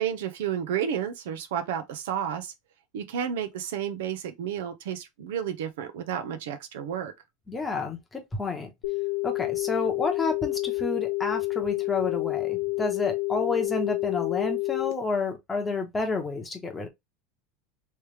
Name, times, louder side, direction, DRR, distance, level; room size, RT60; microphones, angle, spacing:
voice 1, 0.0-2.5 2.9-7.1, right 9 dB, 85° right, 0.8 m, -31 dB
voice 2, 7.5-8.7 9.2-16.9, left 3 dB, 15° left, 1.0 m, -30 dB
sound 1, 8.8-14.9, left 25 dB, 75° left, 0.9 m, -29 dB
3.2 x 3.2 x 3.2 m
supercardioid pair, 145°, 0 cm